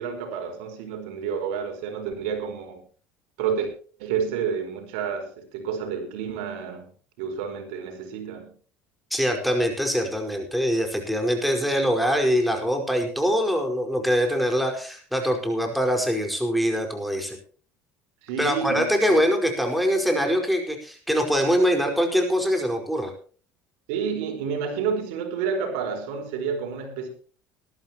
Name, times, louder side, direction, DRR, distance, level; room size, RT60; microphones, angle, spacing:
voice 1, 0.0-2.8 3.4-3.7 4.0-6.9 7.2-8.5 18.2-19.2 23.9-27.1, right 6 dB, 85° right, 5 dB, 4.8 m, -30 dB
voice 2, 9.1-17.4 18.4-23.1, equal, ahead, 3 dB, 5.1 m, -23 dB
20.5 x 13.5 x 3.0 m, 0.41 s
supercardioid pair, 100°, 6 cm